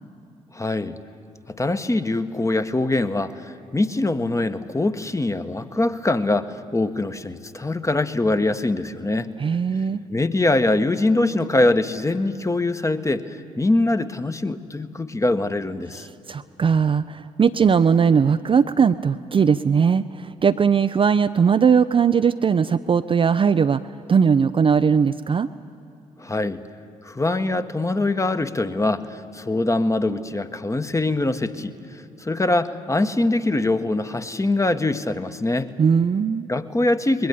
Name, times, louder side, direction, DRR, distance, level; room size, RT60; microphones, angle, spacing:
voice 1, 0.5-1.0 1.5-9.3 10.1-16.1 26.2-26.6 27.0-35.7 36.5-37.3, left 2 dB, 15° left, 10 dB, 1.1 m, -23 dB
voice 2, 9.4-10.0 16.3-23.8 24.1-25.5 35.8-36.5, right 6 dB, 30° right, 10 dB, 0.5 m, -19 dB
24.0 x 21.5 x 7.1 m, 2.6 s
figure-of-eight pair, 45°, 18 cm